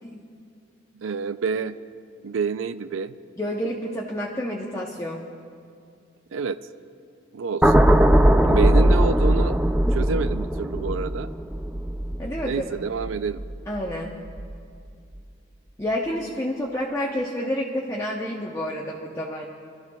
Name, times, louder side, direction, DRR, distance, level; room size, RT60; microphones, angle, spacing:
voice 1, 0.9-1.8 2.2-3.1 6.3-6.6 7.3-7.9 8.4-9.6 9.9-11.3 12.4-13.5, right 5 dB, 75° right, 13 dB, 0.4 m, -28 dB
voice 2, 3.4-5.3 12.2-12.6 13.7-14.2 15.8-19.5, equal, 15° left, -3 dB, 0.8 m, -29 dB
sound 1, 7.6-13.9 14.3-14.6, right 1 dB, 5° right, 0.3 m, -20 dB
25.0 x 13.5 x 2.3 m, 2.3 s
head